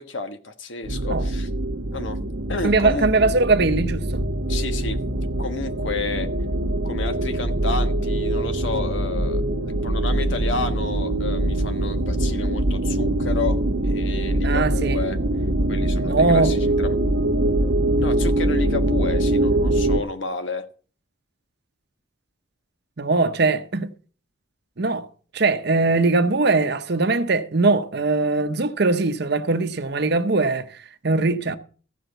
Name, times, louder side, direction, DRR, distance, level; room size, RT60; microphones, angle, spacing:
voice 1, 0.0-1.5 1.9-2.2 2.5-3.1 4.5-5.0 5.4-6.3 6.8-15.2 15.7-17.0 18.0-20.7, left 3 dB, 75° left, 1.4 m, -31 dB
sound 1, 0.8-20.0, right 1 dB, 85° right, 1.1 m, -23 dB
voice 2, 2.6-4.2 14.4-15.0 16.1-16.5 23.0-23.9 24.8-25.1 25.3-31.6, right 3 dB, 60° right, 0.8 m, -21 dB
15.0 x 5.1 x 7.9 m
head